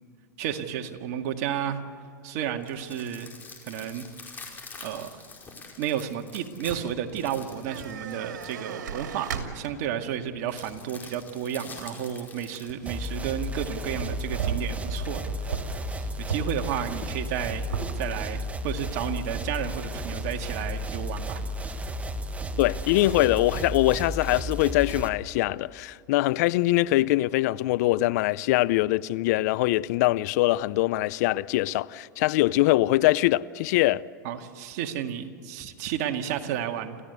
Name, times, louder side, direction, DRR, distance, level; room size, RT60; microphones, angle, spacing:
voice 1, 0.4-1.8 2.2-3.3 3.6-4.1 4.8-5.1 5.8-9.3 9.5-15.6 16.3-17.7 17.9-21.8 34.2-37.0, right 9 dB, 60° right, 2.0 m, -32 dB
sound 1, 2.5-8.7 10.5-12.7, left 4 dB, 20° left, 5.1 m, -45 dB
sound 2, 7.6-10.0 10.6-10.7 12.7-13.1 13.5-16.6 16.9-17.0 17.2-17.9, right 7 dB, 80° right, 2.7 m, -35 dB
sound 3, 12.9-25.1, equal, 15° right, 1.5 m, -33 dB
voice 2, 22.6-34.0, left 17 dB, 60° left, 0.6 m, -23 dB
27.0 x 15.5 x 8.2 m
hypercardioid pair, 115°, 10 cm